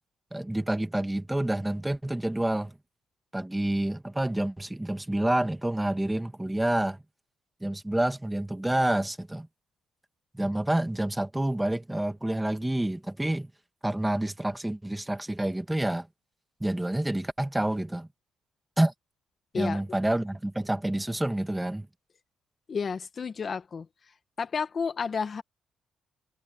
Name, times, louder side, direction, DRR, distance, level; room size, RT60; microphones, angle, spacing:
voice 1, 0.3-2.7 3.3-7.0 7.6-9.5 10.3-13.5 13.8-16.1 16.6-18.1 18.8-18.9 19.6-21.9, right 1 dB, 10° right, 2.0 m, -28 dB
voice 2, 22.7-23.9 24.4-25.4, left 5 dB, 40° left, 1.6 m, -31 dB
cardioid pair, 90°, 0 cm